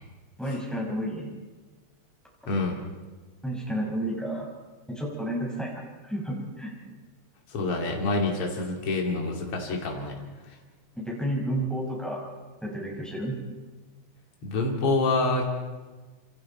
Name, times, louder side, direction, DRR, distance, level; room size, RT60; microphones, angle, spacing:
voice 1, 0.4-1.3 3.4-4.5 4.9-5.7 6.0-6.7 11.0-12.2 12.6-13.4, right 1 dB, ahead, -3 dB, 5.6 m, -31 dB
voice 2, 2.5-2.8 7.5-10.2 10.5-10.6 14.4-15.5, left 3 dB, 45° left, 0 dB, 3.5 m, -27 dB
27.5 x 27.0 x 4.5 m, 1.3 s
omnidirectional pair, 3.6 m